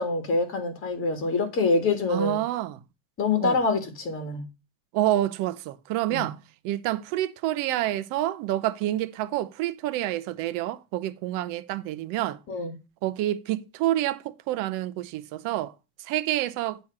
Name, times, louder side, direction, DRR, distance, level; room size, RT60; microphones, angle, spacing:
voice 1, 0.0-2.4 3.2-4.4 6.1-6.3 12.5-12.7, left 3 dB, 35° left, 2.1 m, -25 dB
voice 2, 2.1-2.8 3.4-3.6 4.9-12.4 13.0-15.7 16.0-16.8, right 14 dB, 55° right, 0.7 m, -28 dB
8.7 x 3.1 x 6.0 m
supercardioid pair, 120°, 38 cm